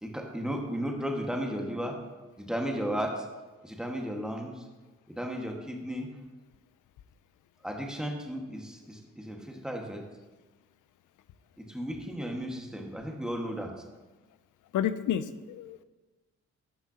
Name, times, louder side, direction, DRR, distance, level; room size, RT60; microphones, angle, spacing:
voice 1, 0.0-2.0 2.4-3.2 3.6-4.5 5.1-6.2 7.6-10.0 11.7-13.7, equal, ahead, 1 dB, 1.7 m, -34 dB
voice 2, 14.7-15.8, left 9 dB, 75° left, 14 dB, 0.5 m, -30 dB
14.5 x 5.6 x 2.9 m, 1.2 s
supercardioid pair, 55°, 31 cm